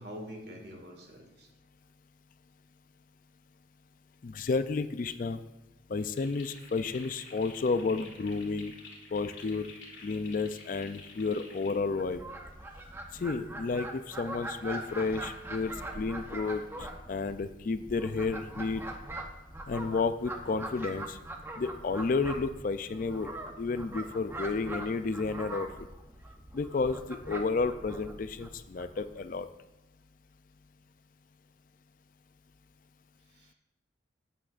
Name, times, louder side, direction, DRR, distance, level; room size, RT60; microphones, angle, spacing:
voice 1, 0.0-1.5 33.3-33.5, equal, 60° right, 1 dB, 1.9 m, -45 dB
voice 2, 4.2-5.4 5.9-8.7 9.1-9.7 10.0-12.2 13.2-16.6 17.1-18.8 19.7-21.2 21.6-23.3 23.6-25.7 26.5-29.5, left 4 dB, 45° left, 11 dB, 0.4 m, -31 dB
sound 1, 6.1-11.8, left 4 dB, 85° left, 2.3 m, -50 dB
Fowl, 11.9-29.2, right 1 dB, 15° right, 0.7 m, -42 dB
12.5 x 8.4 x 2.5 m, 1.0 s
head